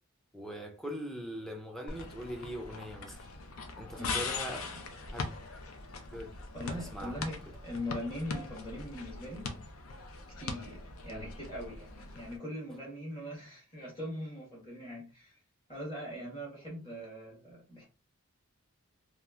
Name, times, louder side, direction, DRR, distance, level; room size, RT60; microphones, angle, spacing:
voice 1, 0.3-3.3 3.8-4.6 5.1-5.3 6.1-6.3 6.9-7.3 11.1-11.3, equal, ahead, 0.4 m, -41 dB
sound 1, 1.9-12.4, left 4 dB, 80° left, 0.5 m, -41 dB
voice 2, 4.0-4.4 4.7-5.0 6.5-9.6 10.4-15.4 15.7-17.8, left 1 dB, 25° left, 1.3 m, -41 dB
3.0 x 2.4 x 2.3 m
head